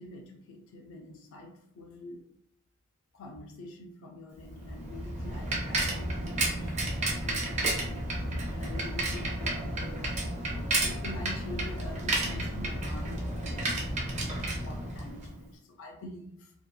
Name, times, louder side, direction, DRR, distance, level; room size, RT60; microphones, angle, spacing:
voice 1, 0.0-2.3 3.1-16.5, left 2 dB, 65° left, 1 dB, 0.4 m, -46 dB
Bicycle, 4.5-15.4, right 1 dB, 35° right, 0.6 m, -32 dB
2.8 x 2.3 x 2.3 m, 0.71 s
head